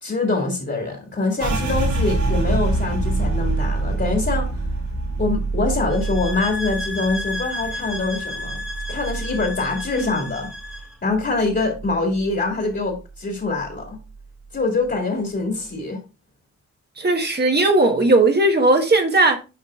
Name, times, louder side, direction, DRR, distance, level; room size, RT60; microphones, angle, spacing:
voice 1, 0.0-4.6 5.2-8.6 8.9-10.5 11.0-14.0 14.5-16.0, left 3 dB, 40° left, 2.1 m, -24 dB
sound 1, 1.4-10.8 11.1-12.3 12.7-13.1 13.6-14.2, right 2 dB, 90° right, 2.7 m, -26 dB
sound 2, 5.9-11.0, left 1 dB, ahead, 1.4 m, -32 dB
voice 2, 17.0-19.4, right 2 dB, 35° right, 1.3 m, -17 dB
9.3 x 5.3 x 2.4 m
wide cardioid pair, 125°, 29 cm